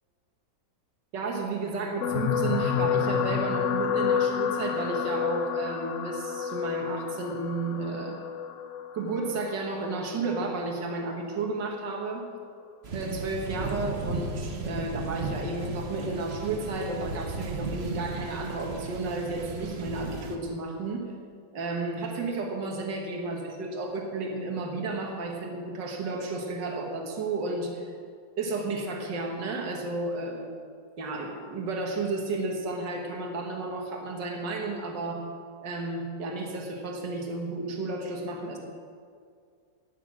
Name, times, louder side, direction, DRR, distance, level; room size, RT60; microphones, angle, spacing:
voice 1, 1.1-8.2 8.9-12.2 12.9-21.1 21.5-27.9 28.4-30.5 31.0-35.2 35.6-38.6, right 3 dB, 75° right, 1 dB, 2.2 m, -32 dB
sound 1, 2.0-10.5 11.2-11.5 11.7-11.8, left 7 dB, 70° left, 0.7 m, -29 dB
sound 2, 12.8-20.4, right 3 dB, 40° right, 1.1 m, -35 dB
17.5 x 6.8 x 7.4 m, 2.2 s
omnidirectional pair, 1.9 m